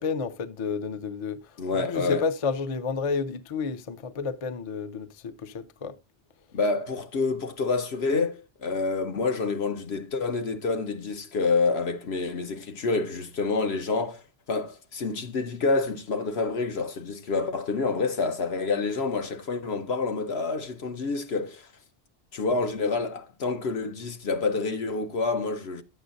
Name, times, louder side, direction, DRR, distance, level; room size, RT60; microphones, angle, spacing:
voice 1, 0.0-1.4 1.7-5.9, left 5 dB, 40° left, 0.5 m, -30 dB
voice 2, 1.6-2.2 6.5-14.2 14.5-21.7 22.3-25.8, left 4 dB, 70° left, 1.2 m, -28 dB
11.0 x 8.0 x 2.5 m
omnidirectional pair, 1.1 m